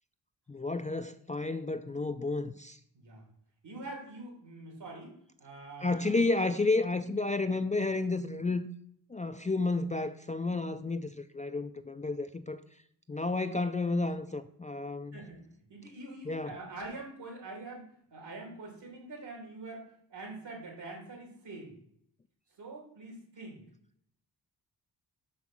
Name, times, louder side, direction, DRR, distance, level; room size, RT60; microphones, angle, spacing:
voice 1, 0.5-2.8 5.8-8.7 9.1-12.6 13.1-15.2 16.3-16.6, left 3 dB, 20° left, 0.3 m, -31 dB
voice 2, 3.6-5.1 5.4-6.1 15.1-15.4 15.7-21.7 22.6-23.6, right 2 dB, 75° right, 3.0 m, -45 dB
6.1 x 5.5 x 6.0 m
cardioid pair, 75°, 42 cm